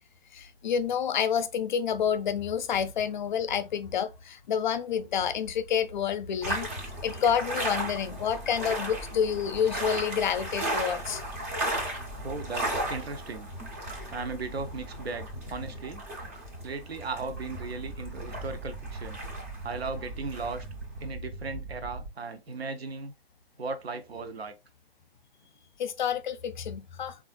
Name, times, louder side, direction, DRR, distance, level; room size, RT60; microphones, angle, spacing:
voice 1, 0.3-6.7 7.0-11.2 25.8-27.2, left 8 dB, 50° left, 0.4 m, -28 dB
sound 1, 6.4-21.0, right 1 dB, 15° right, 0.3 m, -35 dB
voice 2, 12.2-13.5 14.1-16.0 16.6-19.2 19.6-20.7 21.0-23.1 23.6-24.5, right 4 dB, 90° right, 0.5 m, -37 dB
sound 2, 17.1-22.1, right 3 dB, 65° right, 0.9 m, -41 dB
3.5 x 2.3 x 2.3 m
figure-of-eight pair, 130°, 30 cm